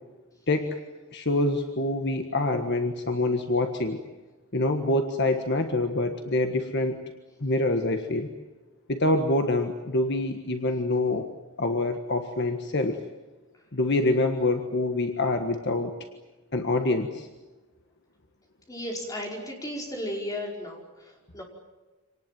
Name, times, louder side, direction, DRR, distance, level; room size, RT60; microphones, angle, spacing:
voice 1, 0.5-0.8 1.1-4.0 4.5-7.0 7.4-8.3 8.9-11.3 11.6-13.0 13.7-15.9 16.5-17.3, left 2 dB, 50° left, 5 dB, 1.6 m, -26 dB
voice 2, 18.7-21.4, left 1 dB, 15° left, 0 dB, 5.0 m, -35 dB
26.5 x 19.0 x 9.2 m, 1.2 s
head